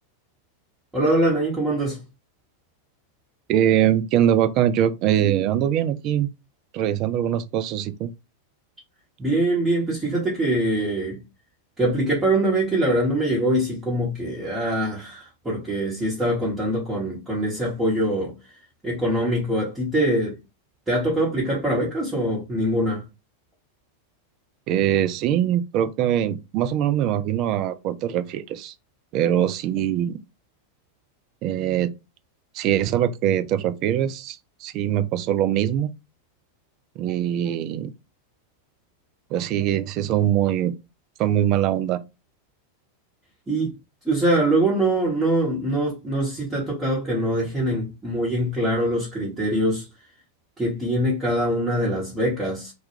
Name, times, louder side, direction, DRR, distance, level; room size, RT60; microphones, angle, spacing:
voice 1, 0.9-2.0 9.2-11.2 11.8-18.3 18.8-20.4 20.9-23.0 43.5-43.7 44.0-49.8 50.6-52.7, right 1 dB, 10° right, 1.0 m, -23 dB
voice 2, 3.5-6.3 6.7-8.1 24.7-28.7 29.1-30.2 31.4-31.9 32.5-35.9 37.0-37.9 39.3-40.8 41.2-42.0, right 11 dB, 40° right, 0.3 m, -22 dB
2.3 x 2.2 x 3.0 m
figure-of-eight pair, 90°, 0 cm